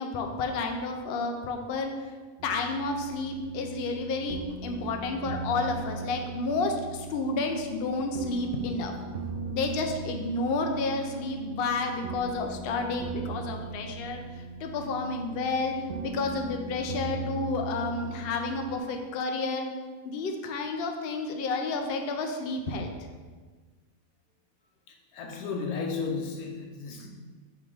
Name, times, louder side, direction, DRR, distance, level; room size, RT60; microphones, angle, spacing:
voice 1, 0.0-1.9 2.4-8.9 9.5-15.7 16.0-19.7 20.0-22.9, left 3 dB, 55° left, 3 dB, 0.7 m, -31 dB
sound 1, 2.4-18.8, right 3 dB, 65° right, 0.6 m, -39 dB
voice 2, 25.1-27.1, left 5 dB, 85° left, 2 dB, 1.3 m, -33 dB
5.7 x 3.5 x 4.9 m, 1.4 s
omnidirectional pair, 1.5 m